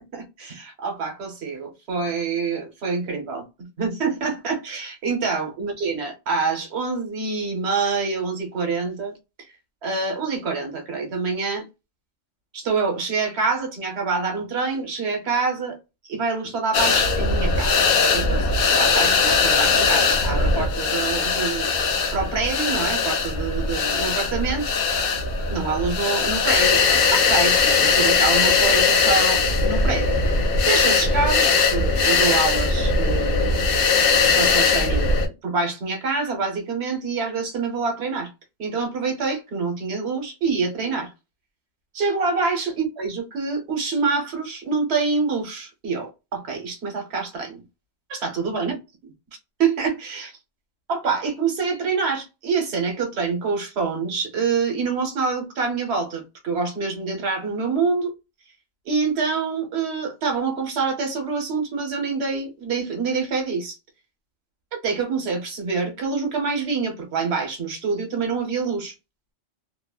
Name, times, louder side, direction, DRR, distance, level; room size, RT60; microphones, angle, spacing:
voice 1, 0.1-3.4 3.8-9.1 9.4-9.5 9.8-11.6 12.5-15.8 16.1-17.8 18.1-21.7 22.1-24.7 25.5-30.1 30.6-33.8 34.1-35.1 35.4-38.3 38.6-41.1 41.9-47.6 48.1-48.7 49.6-50.3 50.9-58.1 58.8-63.8 64.7-68.9, right 4 dB, 60° right, 1.1 m, -26 dB
Texture of whispers and wind ghost FX, 16.7-35.3, left 4 dB, 60° left, 0.7 m, -20 dB
2.7 x 2.0 x 2.3 m
omnidirectional pair, 1.3 m